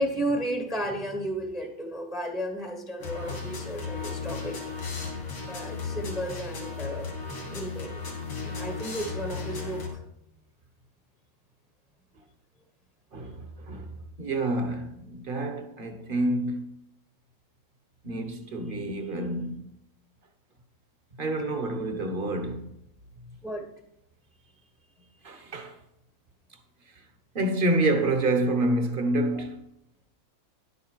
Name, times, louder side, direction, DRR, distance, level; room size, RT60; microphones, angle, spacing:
voice 1, 0.0-4.6 5.4-7.1 7.4-8.1 8.6-10.0 23.4-23.7, right 1 dB, ahead, 0.8 m, -33 dB
sound 1, 3.0-9.9, left 4 dB, 80° left, 3.5 m, -35 dB
voice 2, 13.1-16.7 18.0-19.6 21.2-22.7 25.2-25.8 26.9-27.0 27.3-29.6, right 2 dB, 35° right, 1.0 m, -28 dB
11.0 x 8.3 x 4.7 m
omnidirectional pair, 2.2 m